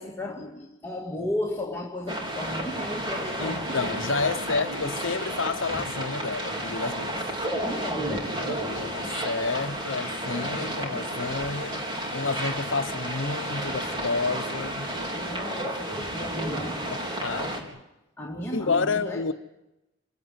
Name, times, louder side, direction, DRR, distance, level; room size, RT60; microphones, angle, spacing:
voice 1, 0.0-3.8 7.6-8.4 15.1-16.9 17.4-17.7 18.2-19.3, left 1 dB, 15° left, 2.6 m, -34 dB
sound 1, 2.1-17.6, right 1 dB, 25° right, 4.3 m, -32 dB
voice 2, 3.4-7.2 7.7-7.8 8.2-14.9 16.9-17.8 18.5-19.3, left 4 dB, 70° left, 0.9 m, -30 dB
27.0 x 16.5 x 9.6 m
head